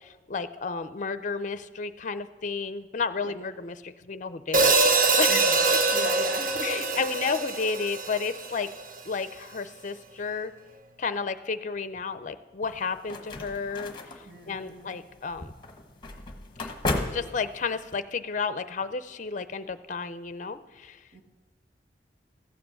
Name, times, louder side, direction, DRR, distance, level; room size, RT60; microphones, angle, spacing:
voice 1, 0.3-5.8 6.6-8.7 9.0-10.5 11.0-13.9 14.5-15.5 16.6-16.7 17.1-21.0, left 5 dB, 45° left, 13 dB, 0.5 m, -32 dB
Hi-hat, 4.5-8.8, right 3 dB, 50° right, 0.7 m, -24 dB
voice 2, 5.3-7.0 14.2-15.0 21.1-21.2, right 2 dB, 90° right, 3 dB, 1.9 m, -41 dB
sound 1, 12.6-18.0, left 2 dB, 25° left, 1.2 m, -35 dB
14.5 x 7.7 x 7.0 m, 1.3 s
head